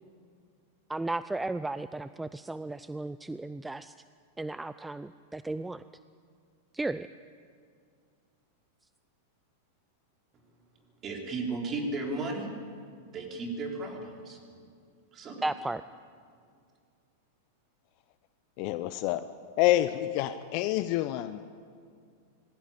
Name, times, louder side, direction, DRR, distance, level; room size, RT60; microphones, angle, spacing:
voice 1, 0.9-3.9 4.4-5.8 6.7-7.1 15.4-15.8, right 2 dB, 10° right, 14 dB, 0.4 m, -34 dB
voice 2, 11.0-12.5 13.1-14.4 15.1-15.4, right 3 dB, 30° right, 1 dB, 4.3 m, -34 dB
voice 3, 18.6-19.2 19.6-21.4, left 15 dB, 50° left, 12 dB, 0.7 m, -27 dB
21.0 x 16.0 x 8.6 m, 2.2 s
hypercardioid pair, 105°, 0 cm